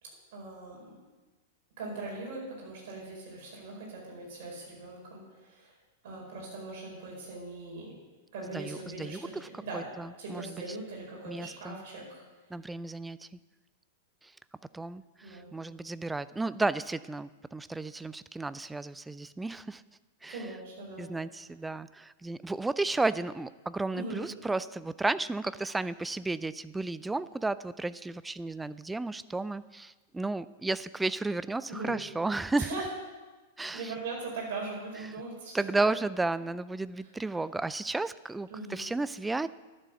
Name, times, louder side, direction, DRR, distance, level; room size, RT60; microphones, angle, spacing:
voice 1, 0.0-1.0 1.8-5.7 6.0-7.9 8.3-9.9 10.2-12.2 15.2-15.5 20.3-21.1 23.9-24.3 31.7-32.0 32.6-32.9 33.7-35.9 38.5-38.8, right 3 dB, 50° right, -2 dB, 4.8 m, -40 dB
voice 2, 8.5-9.5 9.7-10.5 11.3-11.8 12.5-13.3 14.7-19.8 20.2-20.4 21.0-32.8 33.6-33.9 35.5-39.5, right 2 dB, 10° right, 16 dB, 0.3 m, -33 dB
11.5 x 7.5 x 6.8 m, 1.2 s
figure-of-eight pair, 95°, 0 cm